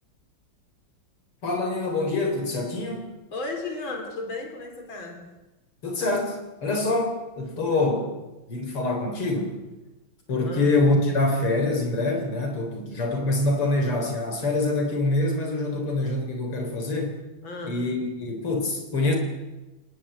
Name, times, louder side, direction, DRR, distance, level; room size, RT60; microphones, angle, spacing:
voice 1, 1.4-3.1 5.8-8.1 8.5-9.5 10.3-17.2 17.6-19.2, left 2 dB, 85° left, 3 dB, 4.9 m, -25 dB
voice 2, 3.3-5.2 10.4-10.7 17.4-17.8, left 3 dB, 65° left, 3 dB, 4.6 m, -34 dB
29.0 x 19.5 x 8.1 m, 1.1 s
omnidirectional pair, 2.4 m